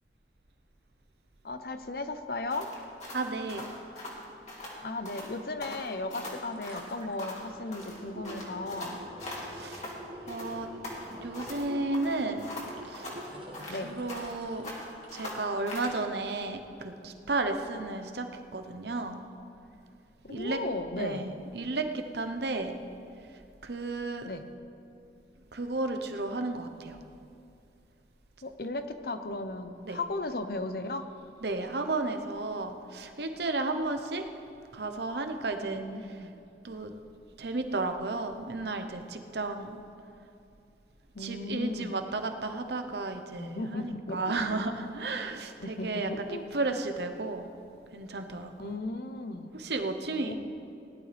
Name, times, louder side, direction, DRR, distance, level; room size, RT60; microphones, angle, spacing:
voice 1, 1.4-2.7 4.8-9.0 13.7-13.9 20.2-21.2 24.2-24.4 28.4-31.1 35.6-36.3 41.1-41.9 43.4-44.6 45.6-46.4 46.7-46.8 48.6-49.5 50.3-50.4, left 2 dB, 60° left, 9 dB, 0.8 m, -36 dB
sound 1, 2.5-4.8 5.0-5.3 5.6-7.5 7.7-10.0 10.3-11.7 11.9-14.4 14.6-16.0, left 1 dB, 40° left, 2.5 m, -41 dB
voice 2, 3.1-3.6 9.5-9.9 10.3-10.7 11.2-12.5 12.8-13.1 13.7-14.7 15.1-18.3 18.5-19.2 20.3-20.6 20.9-22.8 23.6-24.3 25.5-27.0 29.8-30.0 31.4-34.2 34.7-36.3 36.6-36.9 37.4-39.8 41.2-47.5 47.9-48.8 49.5-50.3, right 3 dB, 70° right, 6 dB, 0.9 m, -33 dB
sound 2, 5.9-6.0 6.3-15.4 15.8-15.9, right 1 dB, 30° right, 1.5 m, -46 dB
18.5 x 11.5 x 3.4 m, 2.6 s
head